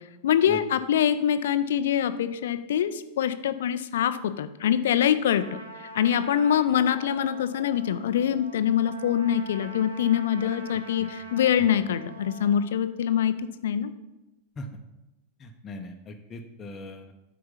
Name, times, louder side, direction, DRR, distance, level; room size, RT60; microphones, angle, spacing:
voice 1, 0.2-5.6 5.9-13.3 13.6-13.9, left 9 dB, 60° left, 12 dB, 0.5 m, -24 dB
Trumpet, 5.3-12.6, right 1 dB, 85° right, 1.0 m, -44 dB
voice 2, 10.4-11.1 11.6-11.7 14.6-14.7 15.4-17.1, left 2 dB, 25° left, 3 dB, 0.8 m, -41 dB
7.8 x 4.7 x 5.7 m, 0.97 s
figure-of-eight pair, 90°, 0 cm